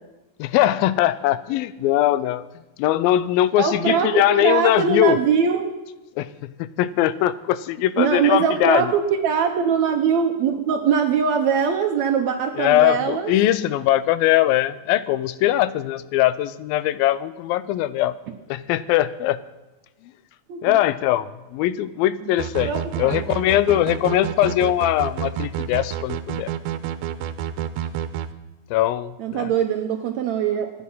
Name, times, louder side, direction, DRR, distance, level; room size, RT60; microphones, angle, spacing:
voice 1, 0.4-2.4 2.8-5.2 6.2-8.9 12.6-18.1 18.5-19.4 20.6-22.7 23.0-26.5 28.7-29.5, left 13 dB, 85° left, 16 dB, 2.4 m, -21 dB
voice 2, 3.6-5.8 8.0-13.3 20.5-20.8 22.6-23.2 29.2-30.7, right 7 dB, 70° right, 5 dB, 1.7 m, -22 dB
sound 1, 22.4-28.3, right 10 dB, 85° right, 2.6 m, -29 dB
25.0 x 9.7 x 5.6 m, 1.1 s
omnidirectional pair, 4.1 m